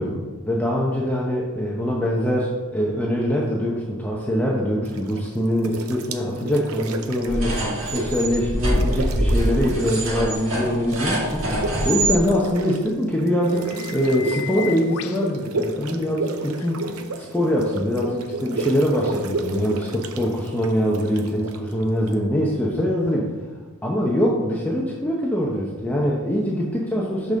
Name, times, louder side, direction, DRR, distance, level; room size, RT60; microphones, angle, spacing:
voice 1, 0.0-23.3 23.8-27.4, equal, 10° left, -4 dB, 0.8 m, -23 dB
sound 1, 4.8-5.3 5.6-8.4 8.6-10.4 10.6-22.1, right 2 dB, 85° right, 0.7 m, -32 dB
sound 2, 7.3-12.2, right 1 dB, 65° right, 2.2 m, -24 dB
sound 3, 8.9-9.0 12.9-13.0 13.4-15.3 16.6-16.7 18.3-18.4, left 9 dB, 80° left, 0.5 m, -36 dB
6.1 x 5.2 x 6.3 m, 1.3 s
head